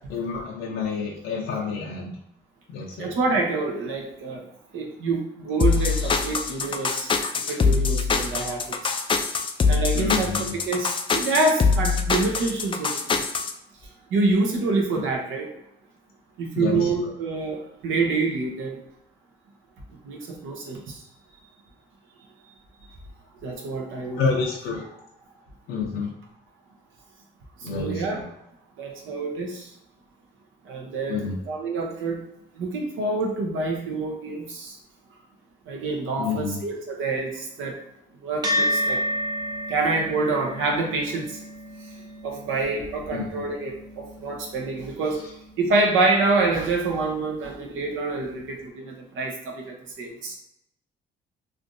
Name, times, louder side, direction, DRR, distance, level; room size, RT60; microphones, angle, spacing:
voice 1, 0.1-2.1 2.7-3.1 9.9-10.5 16.5-16.9 24.2-24.8 25.7-26.1 27.6-28.2 31.1-31.3 36.2-36.6 43.1-43.2, left 5 dB, 85° left, -3 dB, 0.6 m, -28 dB
voice 2, 3.0-4.4 4.7-7.1 7.5-8.9 9.7-10.3 10.6-13.2 14.1-15.5 16.4-18.8 20.0-21.0 23.4-24.2 24.9-25.0 27.6-28.2 28.8-29.7 30.7-32.2 32.6-34.8 35.7-37.7 38.2-39.0 39.7-41.4 42.2-45.2 45.6-50.3, right 3 dB, 80° right, 0 dB, 0.9 m, -27 dB
sound 1, 5.6-13.5, left 4 dB, 25° left, 0.3 m, -23 dB
sound 2, 38.4-47.1, equal, 20° right, 0.6 m, -32 dB
3.4 x 2.5 x 2.6 m, 0.79 s
cardioid pair, 90°, 20 cm